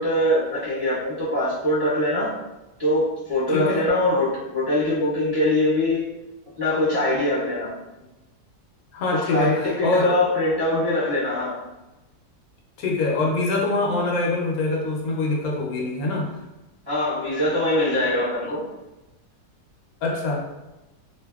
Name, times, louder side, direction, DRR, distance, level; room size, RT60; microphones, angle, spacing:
voice 1, 0.0-2.3 2.8-6.0 6.6-7.7 9.1-11.6 16.9-18.7, left 1 dB, 20° right, -13 dB, 1.0 m, -23 dB
voice 2, 3.5-3.8 8.9-10.2 12.8-16.3 20.0-20.5, left 3 dB, 70° left, -1 dB, 1.0 m, -24 dB
2.7 x 2.6 x 2.2 m, 1.0 s
omnidirectional pair, 1.7 m